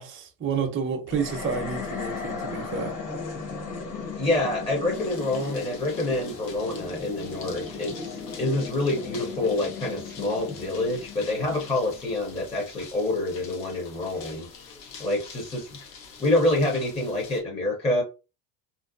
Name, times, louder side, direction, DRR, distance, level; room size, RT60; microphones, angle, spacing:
voice 1, 0.0-3.0, right 6 dB, 25° right, 0.7 m, -30 dB
sound 1, 1.1-12.4, left 4 dB, 35° left, 1.0 m, -37 dB
voice 2, 4.2-14.5 15.0-15.8 16.2-18.0, left 2 dB, 10° left, 0.7 m, -27 dB
sound 2, 4.9-17.4, left 5 dB, 75° left, 1.0 m, -46 dB
2.6 x 2.0 x 2.5 m
hypercardioid pair, 90°, 50 cm